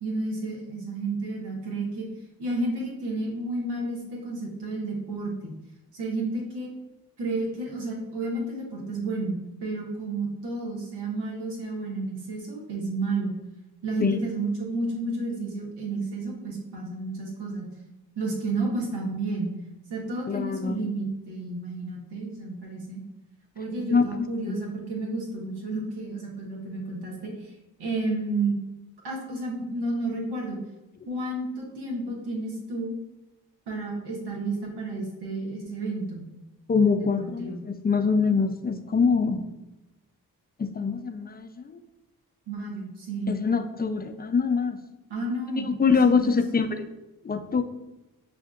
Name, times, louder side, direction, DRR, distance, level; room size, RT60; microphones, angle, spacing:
voice 1, 0.0-2.1 2.4-5.5 5.9-6.7 7.2-13.4 13.8-17.7 18.2-19.5 19.9-23.0 23.5-28.6 29.0-30.6 31.1-32.9 33.7-36.3 36.9-37.6 42.5-43.3 45.1-46.4, right 2 dB, 85° right, -2 dB, 0.9 m, -31 dB
voice 2, 20.3-20.9 23.9-24.6 36.7-37.6 37.8-39.4 40.6-41.8 43.3-44.8 45.5-46.9 47.2-47.6, left 5 dB, 25° left, 7 dB, 0.4 m, -24 dB
6.4 x 2.5 x 2.4 m, 1.0 s
supercardioid pair, 40°, 40 cm